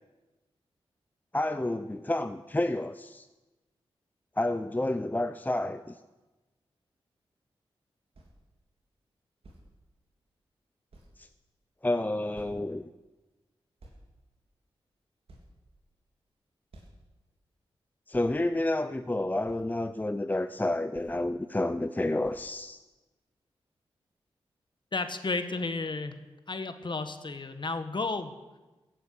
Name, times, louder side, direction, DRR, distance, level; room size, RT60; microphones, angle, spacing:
voice 1, 1.3-3.3 4.4-5.8 11.8-12.9 18.1-22.8, left 1 dB, 15° left, 10 dB, 0.7 m, -29 dB
sound 1, 8.1-8.4 9.4-9.7 10.4-10.5 10.9-11.2 12.3-12.7 13.8-14.0 14.7-14.8 15.3-16.1 16.7-17.1 18.1-18.3 19.5-19.7 20.9-21.2 22.2-22.5, right 1 dB, 70° right, 3.5 m, -53 dB
voice 2, 24.9-26.1 26.5-28.3, left 3 dB, 50° left, 9 dB, 1.6 m, -32 dB
16.0 x 9.0 x 8.6 m, 1.1 s
cardioid pair, 45°, 11 cm